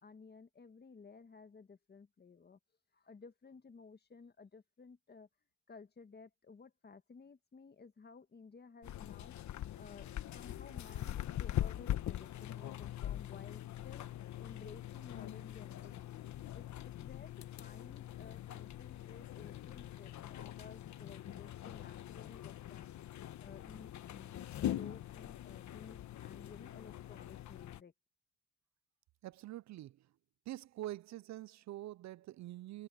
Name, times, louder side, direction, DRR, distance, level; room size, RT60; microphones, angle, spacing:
voice 1, 0.0-2.6 2.9-5.3 5.7-9.4 9.8-14.1 14.4-16.1 16.5-22.9 23.4-27.9, left 5 dB, 35° left, 1.8 m, -56 dB
sound 1, 8.8-27.8, left 12 dB, 70° left, 1.2 m, -43 dB
voice 2, 29.2-30.1 30.5-32.9, right 14 dB, 65° right, 0.5 m, -45 dB
cardioid pair, 90°, 30 cm